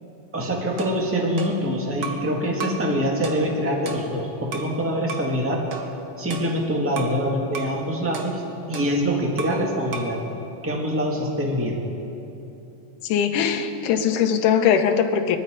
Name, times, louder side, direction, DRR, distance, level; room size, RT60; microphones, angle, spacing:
voice 1, 0.3-5.6 6.2-8.4 8.7-10.2 10.6-11.8, equal, 5° right, -1 dB, 1.1 m, -24 dB
sound 1, 0.8-2.3 2.6-2.9 3.2-4.8 5.1-5.3 5.7-7.2 7.5-7.8 8.1-9.7 9.9-10.2, right 5 dB, 70° right, 0.9 m, -36 dB
voice 2, 13.1-15.4, left 8 dB, 90° left, 6 dB, 2.4 m, -20 dB
22.0 x 12.5 x 5.0 m, 2.9 s
omnidirectional pair, 3.5 m